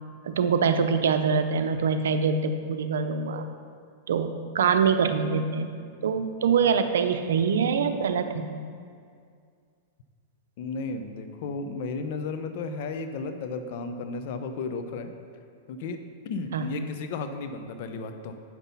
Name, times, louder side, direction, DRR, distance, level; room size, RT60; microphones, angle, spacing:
voice 1, 0.2-3.5 4.1-5.7 6.0-8.5 16.5-16.6, right 6 dB, 90° right, 8 dB, 0.6 m, -24 dB
voice 2, 10.6-15.1 15.7-18.4, left 4 dB, 60° left, 8 dB, 0.7 m, -34 dB
8.2 x 6.0 x 5.5 m, 2.2 s
supercardioid pair, 135°, 0 cm